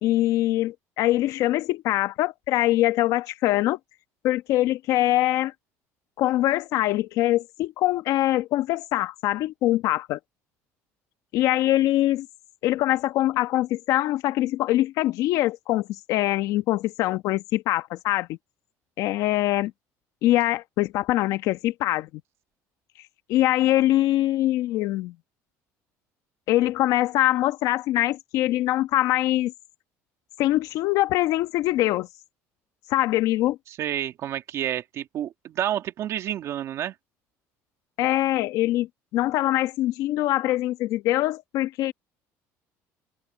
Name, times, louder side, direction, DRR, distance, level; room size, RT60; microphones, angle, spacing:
voice 1, 0.0-3.8 4.2-5.5 6.2-10.2 11.3-12.3 12.6-18.4 19.0-19.7 20.2-22.1 23.3-25.1 26.5-29.5 30.4-32.1 32.9-33.6 38.0-41.9, left 15 dB, 70° left, 1.3 m, -23 dB
voice 2, 33.7-36.9, right 11 dB, 50° right, 2.3 m, -29 dB
cardioid pair, 135°, 6 cm